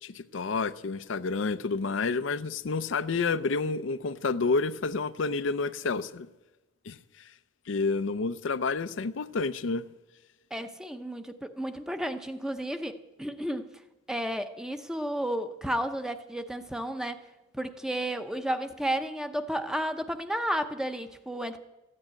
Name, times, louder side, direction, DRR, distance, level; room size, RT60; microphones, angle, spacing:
voice 1, 0.0-6.3 6.9-7.3 7.7-9.9, left 4 dB, 75° left, 0.5 m, -29 dB
voice 2, 10.5-13.7 14.1-17.2 17.5-21.6, right 1 dB, 5° right, 0.7 m, -32 dB
14.5 x 9.8 x 8.9 m
head